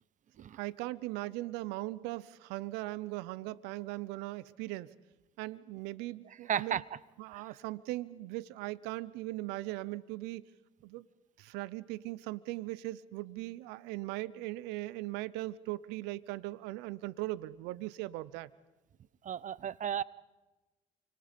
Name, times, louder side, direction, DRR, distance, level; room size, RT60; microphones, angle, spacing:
voice 1, 0.5-4.9 5.4-6.8 7.2-10.4 10.8-11.1 11.4-18.5, right 18 dB, 85° right, 0.7 m, -39 dB
voice 2, 6.5-6.8 7.3-7.4 19.2-20.0, right 9 dB, 50° right, 0.9 m, -33 dB
28.5 x 25.5 x 5.2 m
supercardioid pair, 65°, 17 cm